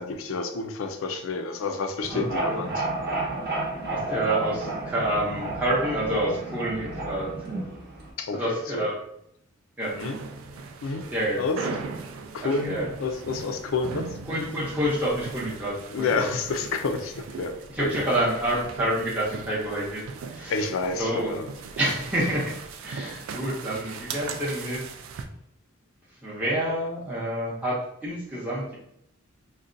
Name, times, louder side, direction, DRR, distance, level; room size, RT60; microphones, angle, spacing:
voice 1, 0.0-2.9 8.2-8.9 9.9-10.2 10.8-11.0 11.4-11.6 12.3-14.2 15.9-17.5 17.8-18.1 20.5-21.5, left 4 dB, 75° left, 6 dB, 0.4 m, -29 dB
sound 1, 2.0-8.1, right 2 dB, 50° right, 0.7 m, -31 dB
voice 2, 2.1-2.6 3.9-7.3 8.3-9.0 9.8-10.0 11.1-11.4 12.4-12.9 14.3-16.3 17.7-20.0 20.3-20.5 21.0-21.4 21.8-22.5 22.8-24.8 26.2-28.8, right 1 dB, 10° right, -8 dB, 0.5 m, -28 dB
sound 2, 9.8-25.3, right 5 dB, 75° right, 0.3 m, -39 dB
3.9 x 2.1 x 2.5 m, 0.77 s
head